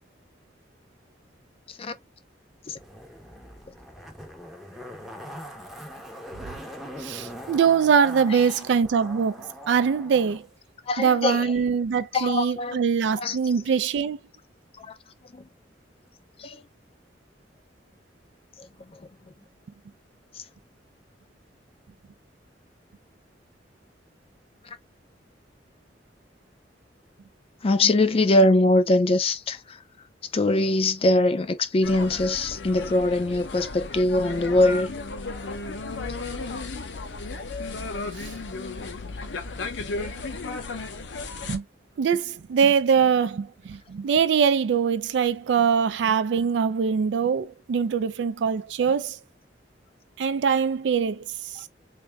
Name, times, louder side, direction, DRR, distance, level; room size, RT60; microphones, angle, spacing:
Zipper (clothing), 2.8-10.4 10.7-10.8, equal, ahead, 0.7 m, -41 dB
voice 1, 7.0-9.3 9.7-10.4 11.0-14.2 38.2-38.3 41.5-41.6 42.0-49.2 50.2-51.7, right 6 dB, 80° right, 0.4 m, -23 dB
voice 2, 10.9-11.5 12.1-12.8 13.2-13.4 15.3-15.4 16.4-16.6 27.6-29.8 30.3-34.9, left 2 dB, 35° left, 0.4 m, -22 dB
sound 1, 31.8-41.6, left 3 dB, 90° left, 0.7 m, -34 dB
3.3 x 2.6 x 3.3 m
head